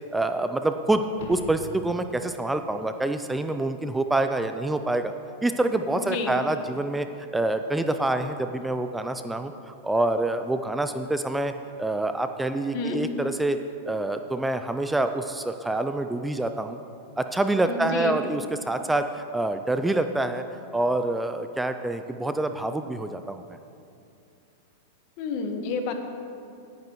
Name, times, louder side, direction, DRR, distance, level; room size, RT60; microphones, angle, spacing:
voice 1, 0.1-5.1 5.4-11.5 11.8-13.6 13.9-16.8 17.2-20.4 20.7-23.6, right 2 dB, 5° right, 8 dB, 0.4 m, -26 dB
sound 1, 1.1-2.3 7.2-7.3, left 1 dB, 70° left, 1.5 m, -40 dB
voice 2, 5.9-6.3 12.7-13.0 17.7-18.2 25.2-25.9, left 3 dB, 55° left, 5 dB, 1.3 m, -29 dB
16.5 x 9.4 x 3.1 m, 2.6 s
hypercardioid pair, 110°, 0 cm